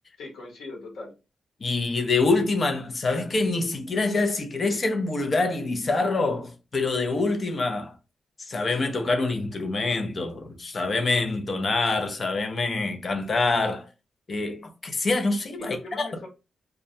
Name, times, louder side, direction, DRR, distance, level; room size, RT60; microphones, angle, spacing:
voice 1, 0.2-1.1 15.6-16.3, left 2 dB, 90° left, 0.9 m, -39 dB
voice 2, 1.6-7.9 8.4-13.8 14.3-16.1, left 3 dB, 40° left, 0.5 m, -25 dB
2.2 x 2.1 x 2.6 m
wide cardioid pair, 115°, 0 cm